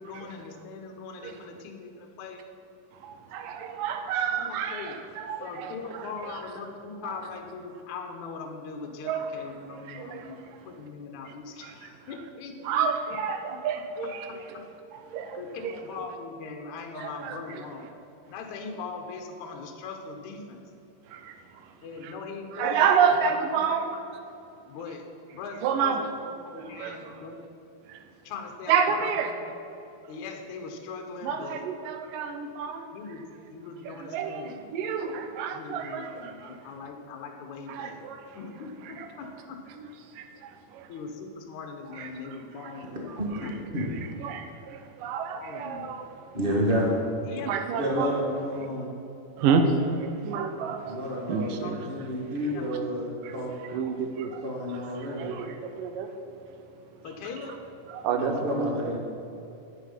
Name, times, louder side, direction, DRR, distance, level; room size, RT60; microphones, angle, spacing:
voice 1, 0.0-2.4 4.3-5.0 5.4-12.9 13.5-13.6 14.3-14.7 15.3-17.9 18.3-20.6 21.8-24.0 24.6-26.0 26.3-27.4 28.2-29.5 30.1-31.6 32.9-34.6 35.5-38.0 38.3-39.6 40.9-44.2 45.3-46.0 47.2-47.6 48.6-48.8 51.6-51.8 52.4-52.7 57.0-57.6, left 4 dB, 65° left, 3 dB, 2.1 m, -41 dB
voice 2, 3.0-5.7 9.1-9.3 9.8-10.4 11.6-11.7 12.6-14.3 15.1-15.7 17.0-17.6 21.1-21.3 22.0-22.1 22.6-23.9 25.6-26.0 26.6-27.2 27.9-28.0 28.7-29.3 31.2-32.9 33.9-36.6 37.7-38.2 39.0-39.1 39.8-39.9 40.2-40.9 42.0-42.1 42.6-42.7 43.8-43.9 44.2-46.1 47.5-48.2 49.4-51.0 51.3-51.8 53.2-53.4 53.6-54.4 55.1-56.1 57.9-58.9, right 6 dB, 75° right, 7 dB, 2.2 m, -29 dB
voice 3, 46.3-47.0 47.7-48.9 50.8-53.5 54.4-55.3 58.1-59.0, equal, 40° right, -2 dB, 0.8 m, -30 dB
11.0 x 10.0 x 5.6 m, 2.9 s
omnidirectional pair, 4.4 m